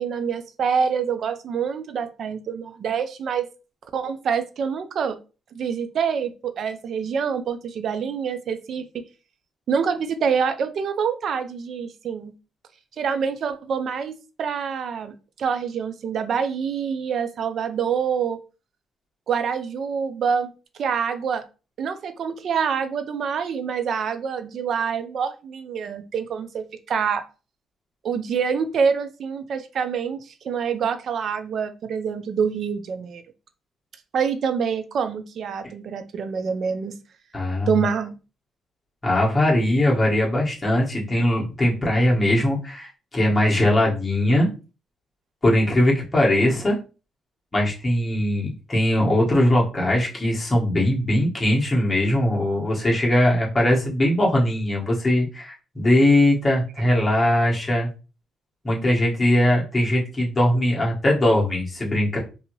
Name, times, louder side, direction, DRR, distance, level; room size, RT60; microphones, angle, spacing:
voice 1, 0.0-3.5 3.9-5.2 5.5-8.8 9.7-12.3 13.0-18.4 19.3-20.5 20.8-21.4 21.8-27.2 28.0-33.2 34.1-37.0 37.7-38.2, right 6 dB, 60° right, 9 dB, 0.5 m, -26 dB
voice 2, 37.3-37.7 39.0-44.5 45.4-46.8 47.5-57.9 58.6-62.2, left 1 dB, 20° left, -3 dB, 1.3 m, -20 dB
2.7 x 2.7 x 3.0 m, 0.32 s
cardioid pair, 90°, 0 cm